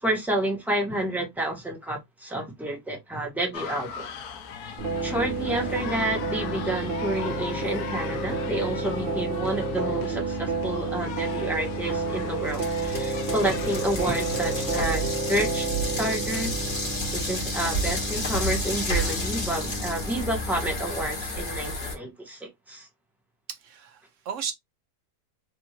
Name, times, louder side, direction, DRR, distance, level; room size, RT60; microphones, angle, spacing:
voice 1, 0.0-4.1 4.6-4.8 5.0-16.5 17.1-22.9, right 1 dB, ahead, 0.9 m, -30 dB
sound 1, 3.5-14.9, left 6 dB, 75° left, 1.1 m, -39 dB
sound 2, 4.8-21.5, right 3 dB, 45° right, 1.0 m, -31 dB
sound 3, 12.5-22.0, left 1 dB, 35° left, 1.3 m, -31 dB
voice 2, 23.5-24.5, right 7 dB, 65° right, 0.8 m, -35 dB
3.5 x 2.4 x 2.9 m
omnidirectional pair, 1.7 m